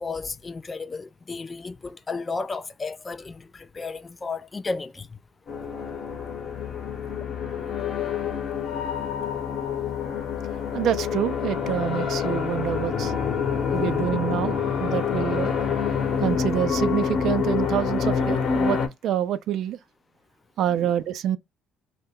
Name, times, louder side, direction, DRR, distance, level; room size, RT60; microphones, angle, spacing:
voice 1, 0.0-5.2 13.7-13.9 20.8-20.9, left 4 dB, 30° left, 0.3 m, -33 dB
sound 1, 5.5-18.9, left 6 dB, 55° left, 0.8 m, -27 dB
voice 2, 10.7-13.1 13.7-15.5 16.2-19.8 20.6-21.4, right 10 dB, 65° right, 0.3 m, -27 dB
2.1 x 2.1 x 3.5 m
hypercardioid pair, 60°, 0 cm